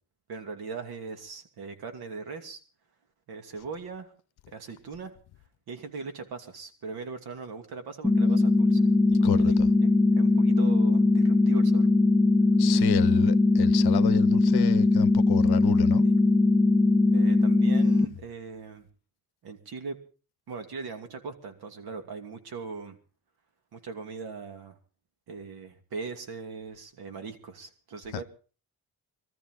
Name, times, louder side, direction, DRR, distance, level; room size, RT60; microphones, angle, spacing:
voice 1, 0.3-2.6 3.3-4.1 4.5-5.2 5.7-9.6 9.8-9.9 10.2-11.9 16.0-16.1 17.1-18.9 19.4-20.0 20.5-23.0 23.7-24.8 25.3-28.2, right 4 dB, 75° right, 2.8 m, -40 dB
sound 1, 8.0-18.1, left 2 dB, ahead, 0.9 m, -21 dB
voice 2, 12.6-16.1, left 13 dB, 85° left, 0.8 m, -30 dB
23.0 x 13.5 x 3.9 m
wide cardioid pair, 165°, 37 cm